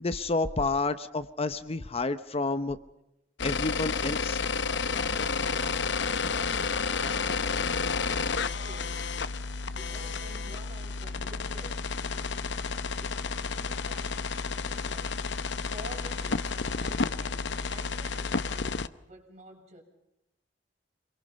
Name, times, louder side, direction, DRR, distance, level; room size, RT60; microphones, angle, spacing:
voice 1, 0.0-2.8 3.4-4.4, left 3 dB, 35° left, 12 dB, 0.8 m, -30 dB
sound 1, 3.4-18.9, left 5 dB, 70° left, 0.8 m, -31 dB
voice 2, 6.1-12.3 13.0-14.2 14.6-15.3 15.7-19.8, right 1 dB, 40° right, 0 dB, 7.4 m, -50 dB
26.5 x 23.0 x 5.5 m, 0.87 s
head